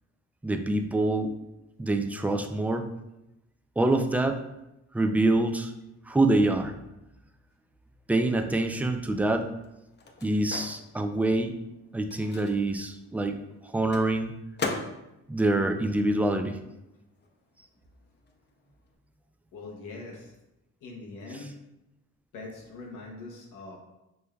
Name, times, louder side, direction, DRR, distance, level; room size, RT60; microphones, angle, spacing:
voice 1, 0.4-1.3 1.8-2.9 3.8-4.4 4.9-5.7 6.1-6.7 8.1-9.5 10.2-11.6 11.9-13.4 13.6-14.3 15.3-16.6, right 2 dB, 5° right, 5 dB, 0.3 m, -25 dB
Microwave oven, 9.4-16.8 17.0-19.0, left 3 dB, 35° left, 0.6 m, -41 dB
voice 2, 19.5-20.3 20.8-21.6 22.3-23.8, left 3 dB, 90° left, -1 dB, 0.8 m, -42 dB
5.3 x 3.2 x 2.3 m, 0.92 s
cardioid pair, 90°, 30 cm